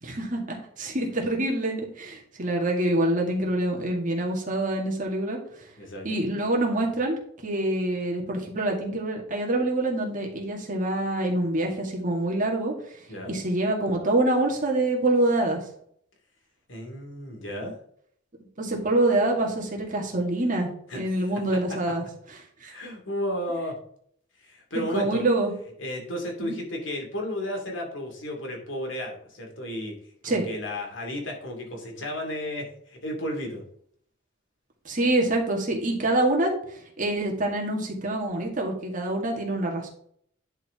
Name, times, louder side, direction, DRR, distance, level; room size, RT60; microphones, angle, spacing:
voice 1, 0.0-5.4 6.0-12.7 13.3-15.6 18.6-22.0 22.6-22.7 24.9-25.5 26.4-26.5 30.2-30.4 34.9-39.9, right 1 dB, 45° right, -1 dB, 2.1 m, -26 dB
voice 2, 5.8-6.2 13.1-13.4 16.7-17.8 20.9-21.3 22.6-23.8 24.4-25.2 25.8-30.0 30.2-33.6, left 1 dB, 70° left, 1 dB, 2.4 m, -33 dB
10.5 x 4.7 x 3.7 m, 0.65 s
head